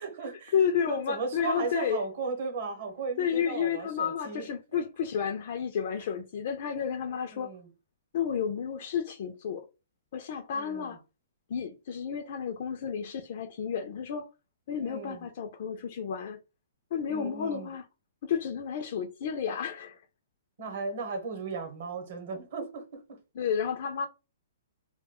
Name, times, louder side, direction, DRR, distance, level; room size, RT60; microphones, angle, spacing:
voice 1, 0.0-0.5 0.9-4.5 7.3-7.7 10.5-11.0 14.8-15.2 17.1-17.7 20.6-23.2, right 4 dB, 40° right, 0.9 m, -36 dB
voice 2, 0.5-2.0 3.2-7.5 8.1-9.7 10.1-11.0 11.5-14.3 14.7-16.4 16.9-17.8 18.2-20.0 23.4-24.1, left 7 dB, 40° left, 0.3 m, -31 dB
2.3 x 2.1 x 3.5 m
hypercardioid pair, 175°, 0 cm